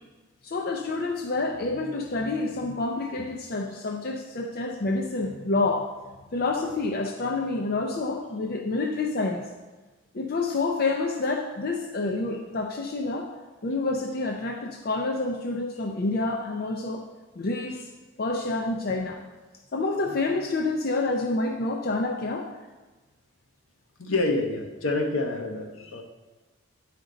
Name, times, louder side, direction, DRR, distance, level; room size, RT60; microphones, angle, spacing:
voice 1, 0.4-5.9 6.3-9.4 10.1-13.3 13.6-17.0 17.4-17.9 18.2-19.2 19.7-22.5, left 3 dB, 45° left, 1 dB, 0.5 m, -28 dB
voice 2, 24.0-26.0, left 2 dB, 70° left, 3 dB, 0.9 m, -27 dB
9.8 x 5.1 x 3.9 m, 1.2 s
head